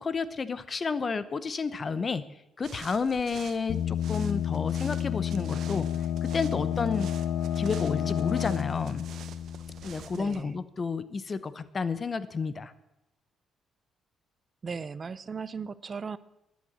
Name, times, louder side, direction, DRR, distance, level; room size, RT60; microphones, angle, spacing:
voice 1, 0.0-2.2 2.6-5.9 6.2-7.1 7.6-9.1 9.8-12.7, left 4 dB, 35° left, 15 dB, 0.8 m, -31 dB
sound 1, 2.6-10.4, right 9 dB, 70° right, 0.9 m, -48 dB
sound 2, 3.7-10.3, left 10 dB, 65° left, 1.0 m, -30 dB
voice 2, 10.1-10.6 14.6-16.2, right 5 dB, 40° right, 17 dB, 0.5 m, -37 dB
12.0 x 9.6 x 7.2 m, 0.89 s
cardioid pair, 90°, 0 cm